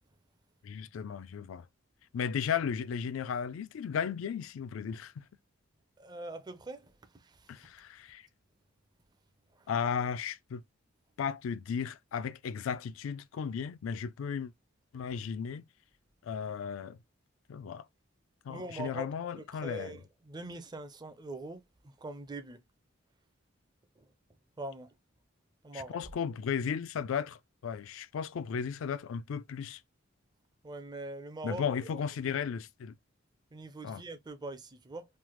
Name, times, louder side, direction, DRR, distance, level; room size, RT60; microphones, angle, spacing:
voice 1, 0.6-1.7 2.1-5.2 7.5-8.2 9.7-10.6 11.2-14.5 14.9-15.6 16.2-17.0 17.5-17.9 18.4-20.0 25.7-29.8 31.4-32.9 33.8-34.0, left 7 dB, 75° left, 0.3 m, -35 dB
voice 2, 6.0-6.9 7.2-7.5 9.6-9.7 18.5-19.1 19.4-22.6 24.0-24.1 24.6-24.9 25.6-26.0 30.6-31.6 31.9-32.0 33.5-35.1, right 2 dB, 20° right, 0.4 m, -43 dB
3.2 x 2.0 x 3.0 m
head